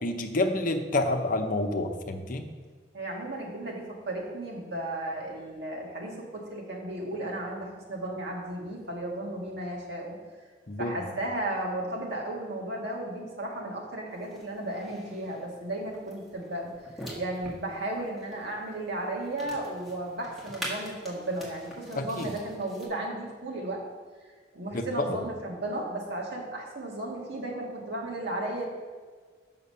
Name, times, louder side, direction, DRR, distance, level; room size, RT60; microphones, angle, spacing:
voice 1, 0.0-2.5 10.7-11.0 22.0-22.3 24.7-25.2, left 2 dB, 50° left, 6 dB, 0.7 m, -29 dB
voice 2, 2.9-10.2 10.8-16.7 17.2-23.8 24.5-28.7, right 1 dB, 70° right, -2 dB, 1.9 m, -34 dB
sound 1, 14.1-22.9, equal, ahead, 1.6 m, -45 dB
6.8 x 5.7 x 5.6 m, 1.5 s
head